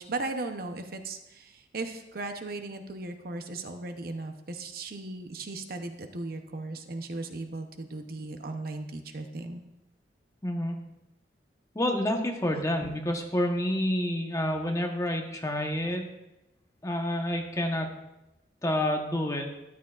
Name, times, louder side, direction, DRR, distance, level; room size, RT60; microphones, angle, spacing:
voice 1, 0.0-9.6 12.6-12.7, right 2 dB, 55° right, 6 dB, 0.8 m, -37 dB
voice 2, 10.4-10.8 11.7-16.0 16.8-17.9 18.6-19.5, left 1 dB, 20° left, 2 dB, 1.0 m, -28 dB
13.0 x 10.0 x 2.4 m, 0.93 s
head